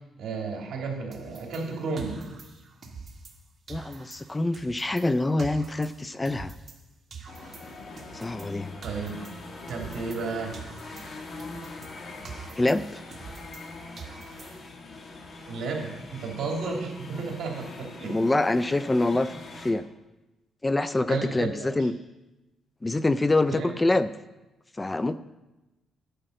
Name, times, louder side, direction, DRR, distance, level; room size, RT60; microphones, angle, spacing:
voice 1, 0.2-2.2 8.8-9.2 9.7-10.5 15.5-18.2 21.1-21.9 23.5-23.7, right 4 dB, 65° right, 0 dB, 2.7 m, -33 dB
sound 1, 1.1-3.4 3.7-6.8 7.1-10.3 10.5-13.7 14.0-14.8, right 5 dB, 45° right, 1.5 m, -45 dB
voice 2, 3.7-6.5 8.1-8.8 12.6-13.0 18.1-19.8 20.6-21.9 22.8-24.1 24.8-25.2, left 2 dB, 20° left, 14 dB, 0.4 m, -25 dB
sound 2, 7.3-19.7, left 2 dB, 45° left, 1.6 m, -43 dB
10.0 x 5.1 x 7.8 m, 1.0 s
cardioid pair, 90°, 0 cm